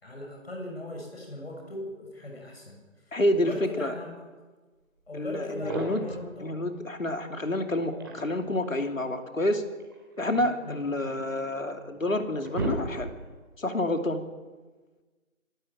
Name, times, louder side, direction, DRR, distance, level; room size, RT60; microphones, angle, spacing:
voice 1, 0.0-2.8 3.1-4.1 5.1-6.6 10.4-11.1, left 1 dB, 45° left, 0 dB, 7.0 m, -39 dB
voice 2, 3.1-3.5 3.8-3.9 5.1-6.1 6.4-9.6 10.2-13.1 13.6-14.2, left 1 dB, 70° left, 6 dB, 2.9 m, -28 dB
sound 1, 5.1-5.2 5.5-6.2 7.7-8.5 9.8-11.2 11.8-11.9 12.2-13.4, right 2 dB, 15° right, 2.7 m, -35 dB
25.0 x 13.0 x 8.8 m, 1.3 s
figure-of-eight pair, 170°, 41 cm